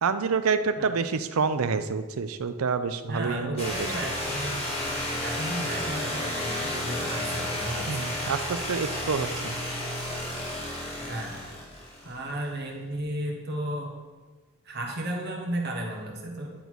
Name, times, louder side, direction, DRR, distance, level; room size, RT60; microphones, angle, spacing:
voice 1, 0.0-3.7 7.9-9.5, right 5 dB, 85° right, 11 dB, 0.5 m, -27 dB
voice 2, 0.8-1.1 3.1-8.3 11.0-11.3 12.0-14.0 14.6-16.5, right 1 dB, 50° right, 1 dB, 1.3 m, -34 dB
sound 1, 3.6-12.3, left 1 dB, 30° left, 1.8 m, -32 dB
10.0 x 4.0 x 4.6 m, 1.3 s
head